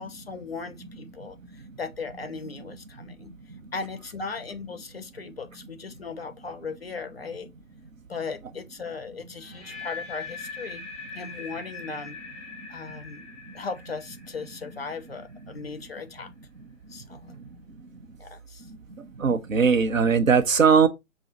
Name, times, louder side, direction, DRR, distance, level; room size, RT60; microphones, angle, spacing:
voice 1, 0.0-3.3 3.7-7.5 8.1-10.9 11.1-12.2 12.7-13.3 13.5-16.3 16.9-17.4 18.2-18.7, left 4 dB, 50° left, 0.5 m, -37 dB
sound 1, 9.4-15.4, left 5 dB, 25° left, 2.4 m, -41 dB
voice 2, 19.2-20.9, right 6 dB, 70° right, 0.6 m, -19 dB
4.8 x 2.0 x 2.8 m
figure-of-eight pair, 150°, 41 cm